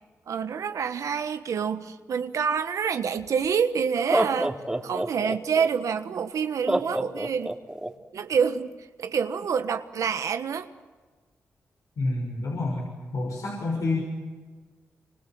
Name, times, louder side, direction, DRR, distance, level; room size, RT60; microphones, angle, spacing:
voice 1, 0.3-4.6 4.8-7.6 8.1-10.7, right 6 dB, 75° right, 9 dB, 1.3 m, -27 dB
Laughter, 3.2-3.3 4.0-5.7 6.7-7.9, right 1 dB, 10° right, 2.8 m, -27 dB
voice 2, 12.0-12.8 13.1-14.0, left 2 dB, 75° left, -1 dB, 6.4 m, -28 dB
26.5 x 26.0 x 7.7 m, 1.4 s
supercardioid pair, 50°, 6 cm